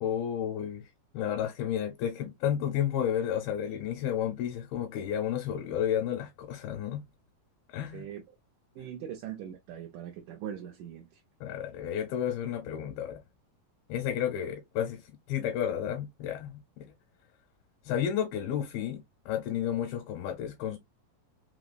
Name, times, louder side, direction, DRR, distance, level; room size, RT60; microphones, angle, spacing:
voice 1, 0.0-0.8 1.1-7.0 7.7-8.1 11.4-13.2 13.9-15.0 15.3-16.8 17.9-20.8, left 9 dB, 85° left, 2.8 m, -32 dB
voice 2, 7.9-8.4 8.8-11.2, right 9 dB, 80° right, 1.8 m, -41 dB
5.7 x 2.1 x 2.5 m
omnidirectional pair, 4.2 m